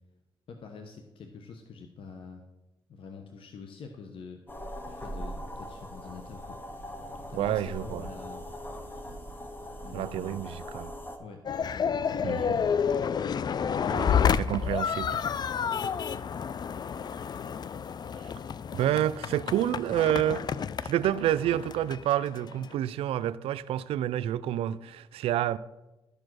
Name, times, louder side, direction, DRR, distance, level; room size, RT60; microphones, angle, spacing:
voice 1, 0.5-2.4 2.9-4.4 4.9-6.6 7.3-8.4 9.8-10.4 11.2-12.7, left 5 dB, 65° left, 1.0 m, -46 dB
sound 1, 4.5-11.2, equal, 20° left, 1.5 m, -41 dB
voice 2, 7.3-8.1 9.9-10.9 12.2-12.6 13.9-15.2 18.7-20.4 20.8-25.6, right 12 dB, 85° right, 0.4 m, -29 dB
sound 2, 11.4-22.7, left 7 dB, 45° left, 0.4 m, -30 dB
12.5 x 4.9 x 6.1 m
cardioid pair, 65°, 10 cm